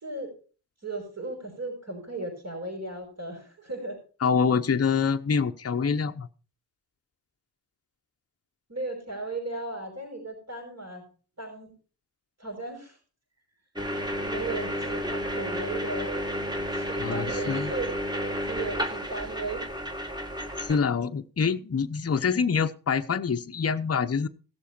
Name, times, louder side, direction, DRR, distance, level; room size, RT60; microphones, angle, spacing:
voice 1, 0.8-4.0 8.7-11.0 11.4-11.7 12.4-13.0 13.9-16.2 16.7-17.9 18.5-19.7, right 2 dB, 40° right, -1 dB, 5.6 m, -36 dB
voice 2, 4.2-6.3 17.0-17.7 20.6-24.3, left 6 dB, 35° left, 8 dB, 0.9 m, -26 dB
sound 1, 13.8-20.8, equal, 10° right, 2.1 m, -31 dB
16.5 x 7.1 x 4.4 m, 0.38 s
supercardioid pair, 50°, 42 cm